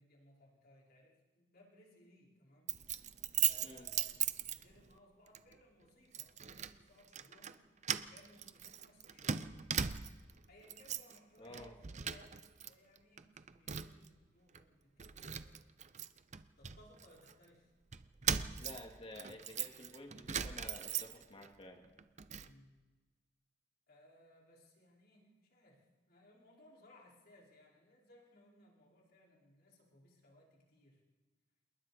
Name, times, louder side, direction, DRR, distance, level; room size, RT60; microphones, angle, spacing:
voice 1, 0.0-2.8 3.4-4.2 4.5-7.6 7.9-9.7 10.5-15.6 16.6-17.7 22.4-22.7 23.9-31.0, left 1 dB, 55° left, -3 dB, 5.2 m, -64 dB
Keys jangling, 2.7-5.0 5.3-5.5 6.1-6.8 7.1-7.5 7.8-10.3 10.6-11.2 11.5-12.7 13.0-14.1 14.5-14.6 15.0-17.3 17.9-21.5 21.8-22.5, right 8 dB, 40° right, 0.7 m, -39 dB
voice 2, 11.4-11.7 18.6-21.8, left 1 dB, 30° left, 3 dB, 2.5 m, -51 dB
28.0 x 21.5 x 4.4 m, 1.3 s
head